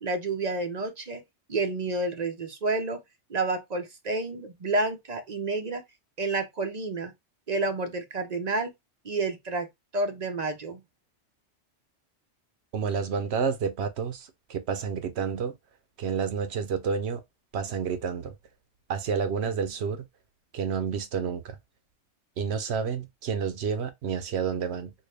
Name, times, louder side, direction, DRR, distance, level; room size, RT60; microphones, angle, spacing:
voice 1, 0.0-1.2 1.5-3.0 3.3-5.8 6.2-7.1 7.5-8.7 9.0-9.7 9.9-10.8, right 2 dB, 45° right, 0.7 m, -29 dB
voice 2, 12.7-15.6 16.0-17.2 17.5-18.3 18.9-20.0 20.5-21.6 22.4-24.9, right 6 dB, 70° right, 0.9 m, -29 dB
4.4 x 2.1 x 3.3 m
omnidirectional pair, 1.2 m